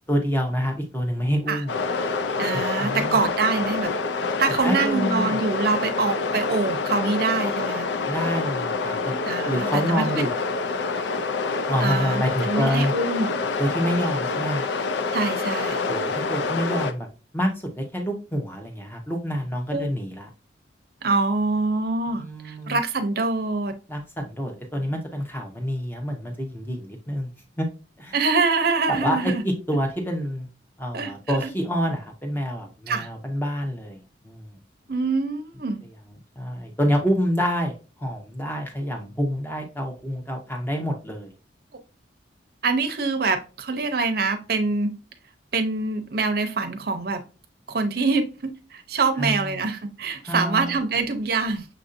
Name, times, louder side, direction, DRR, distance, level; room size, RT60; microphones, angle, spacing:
voice 1, 0.1-1.7 2.8-3.2 4.4-5.4 8.1-9.1 9.4-10.3 11.7-12.9 13.6-14.6 15.9-17.1 17.3-17.5 17.8-20.3 22.1-22.8 23.9-27.3 27.6-27.7 28.0-28.1 28.9-30.5 30.8-34.6 36.4-41.3 49.2-49.5 50.3-50.8, equal, 10° left, 3 dB, 0.8 m, -27 dB
sound 1, 1.7-16.9, left 4 dB, 70° left, 0.4 m, -27 dB
voice 2, 2.4-3.9 4.4-7.9 9.2-10.1 11.8-13.4 15.1-15.8 19.7-19.9 21.0-23.7 28.1-29.4 30.9-31.5 32.9-33.1 34.9-35.8 42.6-44.9 45.5-47.2 47.7-51.7, right 3 dB, 55° right, 7 dB, 0.6 m, -25 dB
6.5 x 2.6 x 2.5 m, 0.33 s
head